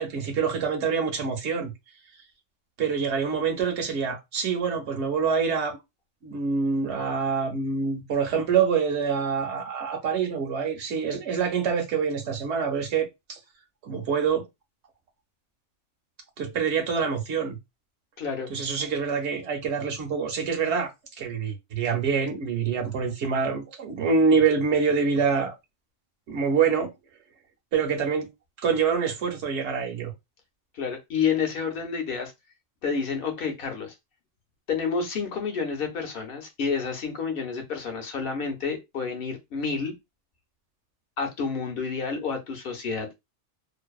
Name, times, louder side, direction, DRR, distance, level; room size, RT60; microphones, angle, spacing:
voice 1, 0.0-1.7 2.8-5.8 6.2-13.4 13.8-14.4 16.4-17.6 18.5-20.9 21.2-25.5 26.3-26.9 27.7-28.3 28.6-30.1, right 6 dB, 65° right, 0.9 m, -26 dB
voice 2, 18.2-18.6 30.7-32.3 32.8-33.9 34.7-39.9 41.2-43.2, left 5 dB, 55° left, 0.8 m, -29 dB
2.6 x 2.1 x 2.3 m
omnidirectional pair, 1.3 m